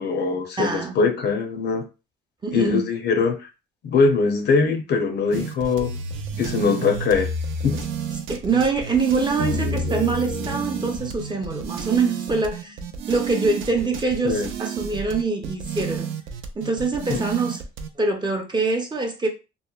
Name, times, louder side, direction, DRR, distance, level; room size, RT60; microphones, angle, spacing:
voice 1, 0.0-1.8 2.5-3.4 3.8-5.9 6.4-7.3 7.6-7.8 14.2-14.5 17.1-17.3, left 4 dB, 60° left, 0.6 m, -22 dB
voice 2, 0.6-1.0 2.4-2.9 8.3-12.8 13.1-16.1 16.6-17.6 18.0-19.3, right 4 dB, 20° right, 0.5 m, -24 dB
sound 1, 5.3-17.9, right 5 dB, 85° right, 0.4 m, -31 dB
sound 2, 9.4-13.8, left 2 dB, 60° right, 0.7 m, -32 dB
2.9 x 2.1 x 2.2 m
cardioid pair, 90°, 20 cm